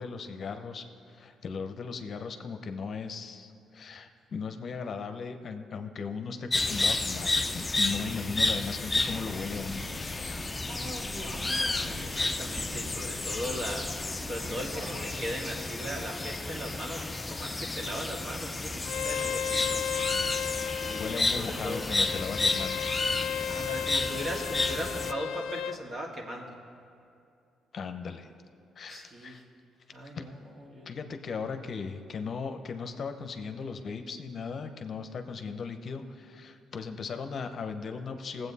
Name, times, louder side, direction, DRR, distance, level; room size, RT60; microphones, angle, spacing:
voice 1, 0.0-10.5 21.0-22.9 23.7-23.9 27.7-28.3 28.8-29.4 30.1-30.2 30.8-38.5, left 5 dB, 50° left, 7 dB, 0.7 m, -37 dB
sound 1, 6.5-25.1, left 2 dB, 20° left, 0.5 m, -31 dB
sound 2, 8.0-15.2, equal, 65° right, 2.2 m, -45 dB
voice 2, 11.5-19.8 20.8-21.9 23.5-26.5 28.9-29.4 29.9-30.9, equal, 45° right, 0 dB, 2.0 m, -38 dB
Bowed string instrument, 18.8-25.8, left 8 dB, 85° left, 0.3 m, -34 dB
18.0 x 7.9 x 4.1 m, 2.5 s
cardioid pair, 90°, 0 cm